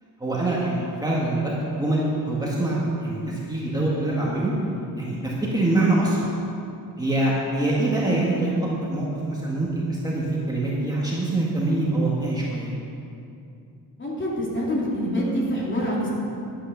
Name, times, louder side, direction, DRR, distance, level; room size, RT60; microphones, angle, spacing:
voice 1, 0.2-4.5 5.0-6.3 7.0-8.5 8.8-12.7, right 2 dB, 10° right, -6 dB, 1.7 m, -24 dB
voice 2, 14.0-16.1, equal, 30° left, -5 dB, 2.9 m, -26 dB
11.0 x 8.6 x 6.8 m, 2.6 s
wide cardioid pair, 160°, 37 cm